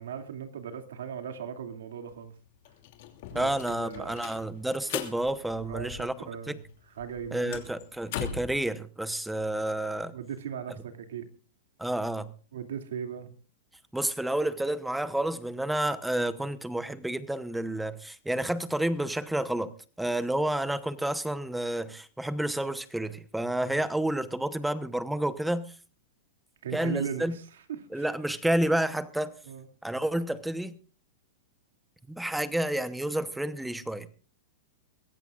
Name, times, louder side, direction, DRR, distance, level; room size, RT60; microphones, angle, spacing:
voice 1, 0.0-2.3 3.3-4.2 5.6-6.6 7.0-7.6 10.1-11.3 12.5-13.3 23.6-23.8 26.6-28.1 29.5-29.7, right 8 dB, 85° right, 2.5 m, -38 dB
sound 1, 2.1-2.2 2.5-6.4 6.7-8.6, left 10 dB, 60° left, 2.7 m, -39 dB
voice 2, 3.3-6.6 7.3-10.1 11.8-12.3 13.9-19.7 20.0-25.7 26.7-27.4 27.9-29.3 29.8-30.7 32.1-34.1, right 1 dB, 5° right, 0.9 m, -30 dB
23.0 x 16.0 x 2.5 m
hypercardioid pair, 140°, 0 cm